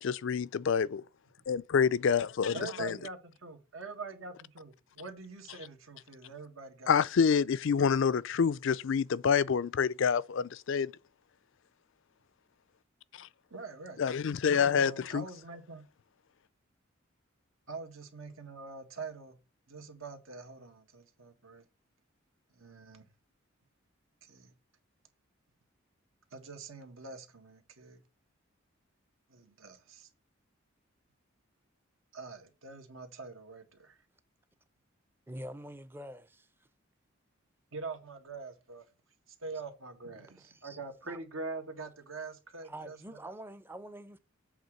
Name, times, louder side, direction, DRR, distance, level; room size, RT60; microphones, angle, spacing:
voice 1, 0.0-1.0 1.5-3.0 6.9-10.9 13.2-13.3 14.0-15.2, left 6 dB, 65° left, 0.4 m, -27 dB
voice 2, 2.5-6.9 13.5-14.0 14.7-15.8 17.7-19.4 19.7-21.7 22.5-23.1 24.2-24.5 26.3-28.0 29.3-30.1 32.1-34.0 37.7-38.8 39.4-43.2, right 4 dB, 75° right, 1.7 m, -44 dB
voice 3, 35.3-36.3 40.6-40.8 41.1-41.2 42.7-44.2, right 1 dB, 10° right, 0.5 m, -45 dB
8.0 x 3.7 x 6.4 m
head